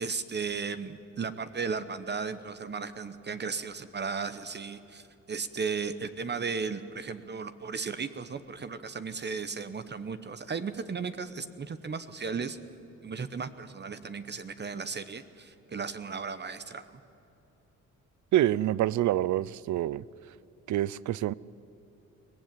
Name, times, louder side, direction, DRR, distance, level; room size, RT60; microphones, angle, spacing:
voice 1, 0.0-12.6 13.0-17.0, right 5 dB, 35° right, 1.0 m, -35 dB
voice 2, 18.3-20.0 20.7-21.3, right 13 dB, 70° right, 0.6 m, -26 dB
23.0 x 18.0 x 9.2 m
cardioid pair, 105°, 30 cm